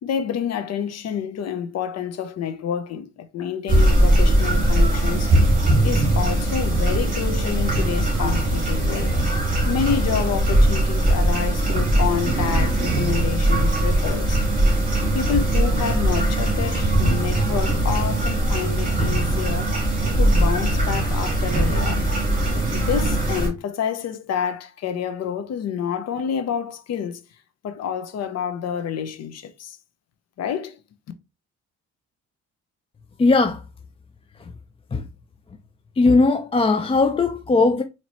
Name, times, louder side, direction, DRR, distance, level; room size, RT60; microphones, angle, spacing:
voice 1, 0.0-5.3 5.8-9.1 9.7-14.4 15.1-19.9 20.2-22.0 22.7-27.2 27.6-29.8 30.4-30.8, left 8 dB, 60° left, 0.7 m, -28 dB
sound 1, 3.7-23.5, right 1 dB, 25° right, 2.4 m, -20 dB
voice 2, 33.2-33.6 34.9-35.0 36.0-37.8, left 3 dB, 20° left, 0.4 m, -18 dB
4.2 x 2.9 x 2.9 m
cardioid pair, 90°, 30 cm